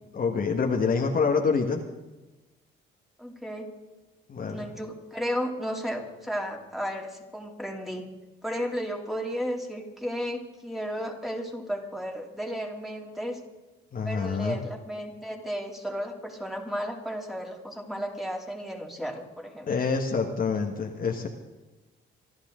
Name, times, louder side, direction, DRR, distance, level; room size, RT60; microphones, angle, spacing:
voice 1, 0.1-1.8 4.3-4.7 13.9-14.6 19.7-21.3, left 5 dB, 45° left, 2 dB, 1.7 m, -26 dB
voice 2, 3.2-3.7 4.5-8.1 8.4-13.4 14.0-19.7, equal, ahead, 0 dB, 3.1 m, -34 dB
26.5 x 11.5 x 3.9 m, 1.1 s
cardioid pair, 90°, 20 cm